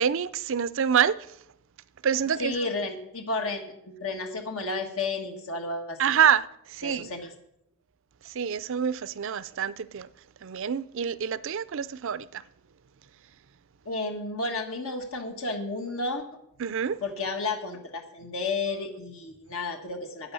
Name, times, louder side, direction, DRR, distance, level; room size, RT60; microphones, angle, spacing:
voice 1, 0.0-1.4 2.0-2.7 6.0-7.1 8.2-10.1 10.4-12.4 16.6-17.0, right 8 dB, 65° right, 0.5 m, -27 dB
voice 2, 2.4-6.0 6.8-7.3 13.8-16.3 17.0-20.3, left 3 dB, 70° left, 1.5 m, -32 dB
11.0 x 9.5 x 6.9 m
head